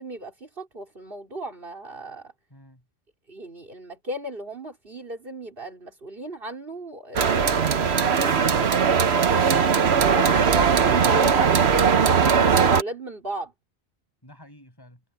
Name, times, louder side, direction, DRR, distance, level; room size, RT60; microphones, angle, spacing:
voice 1, 0.0-2.3 3.3-9.2 10.0-13.5, right 1 dB, 55° right, 4.7 m, -36 dB
voice 2, 2.5-2.8 14.2-15.0, left 1 dB, 20° left, 7.1 m, -48 dB
sound 1, 7.2-12.8, right 6 dB, 70° right, 1.3 m, -19 dB
omnidirectional pair, 1.1 m